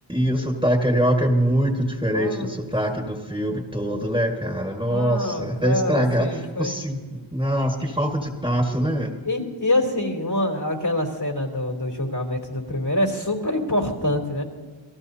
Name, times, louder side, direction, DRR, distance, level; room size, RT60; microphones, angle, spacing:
voice 1, 0.1-6.3 6.6-9.1, equal, 10° right, 1 dB, 1.8 m, -23 dB
voice 2, 2.1-2.6 4.8-6.7 9.2-14.4, left 1 dB, 55° left, 2 dB, 3.4 m, -25 dB
28.0 x 18.0 x 2.8 m, 1.4 s
wide cardioid pair, 50°, 47 cm